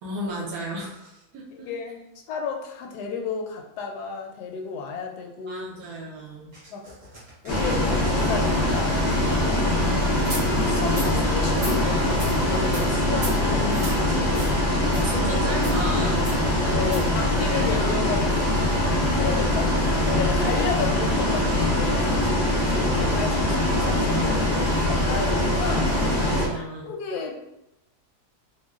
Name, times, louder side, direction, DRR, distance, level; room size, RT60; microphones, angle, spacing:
voice 1, 0.0-1.7 5.5-6.5 9.5-10.1 13.4-13.9 15.0-16.3 26.2-26.9, equal, 70° right, -3 dB, 1.1 m, -34 dB
voice 2, 1.5-2.0 2.3-5.7 6.7-6.9 7.4-9.2 10.7-13.6 14.0-14.5 16.6-19.7 20.0-25.9 26.5-27.4, left 5 dB, 85° left, 2 dB, 1.1 m, -32 dB
sound 1, 6.5-12.0, right 1 dB, 55° right, 1.5 m, -41 dB
Bus, 7.5-26.5, left 1 dB, 65° left, 0.4 m, -23 dB
sound 2, 10.2-10.4 10.9-11.1 11.5-11.8 12.2-12.3 12.7-12.8 13.2-13.3 13.7-14.0 14.3-14.5 14.9-15.0 15.6-15.8 16.2-16.4 16.8-17.0, right 1 dB, 40° right, 0.8 m, -35 dB
3.7 x 2.1 x 2.3 m, 0.87 s
omnidirectional pair, 1.7 m